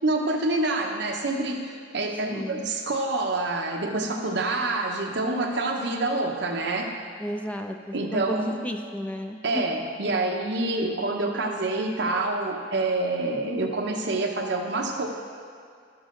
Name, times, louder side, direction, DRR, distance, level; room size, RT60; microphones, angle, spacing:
voice 1, 0.0-6.9 7.9-8.6 9.4-15.1, right 2 dB, 70° right, 2 dB, 0.9 m, -27 dB
voice 2, 2.3-2.7 7.2-9.6, equal, 10° left, 5 dB, 0.4 m, -33 dB
11.5 x 7.2 x 3.8 m, 2.1 s
head